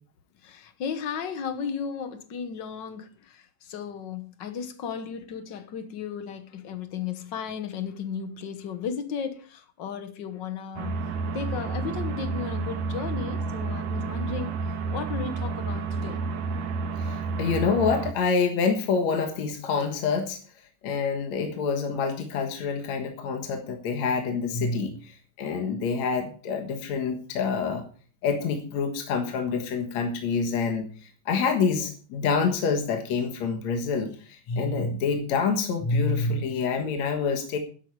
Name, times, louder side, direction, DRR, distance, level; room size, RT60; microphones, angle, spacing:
voice 1, 0.4-16.2, left 6 dB, 80° left, 1.0 m, -35 dB
sound 1, 10.8-18.1, right 4 dB, 75° right, 3.1 m, -30 dB
voice 2, 17.0-20.4 20.8-27.8 28.2-37.6, left 5 dB, 60° left, 2.6 m, -27 dB
12.5 x 11.0 x 4.7 m
omnidirectional pair, 3.8 m